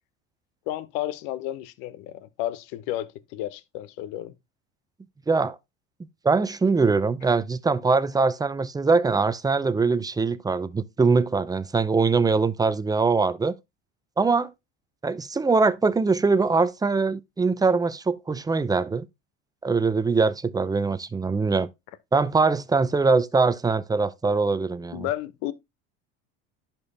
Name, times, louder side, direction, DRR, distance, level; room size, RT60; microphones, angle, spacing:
voice 1, 0.7-4.3 24.9-25.5, left 13 dB, 70° left, 1.0 m, -32 dB
voice 2, 6.2-13.5 14.2-14.5 15.0-19.1 19.6-21.7 22.1-25.1, right 4 dB, 10° right, 0.6 m, -22 dB
10.5 x 4.5 x 3.4 m
supercardioid pair, 100°, 34 cm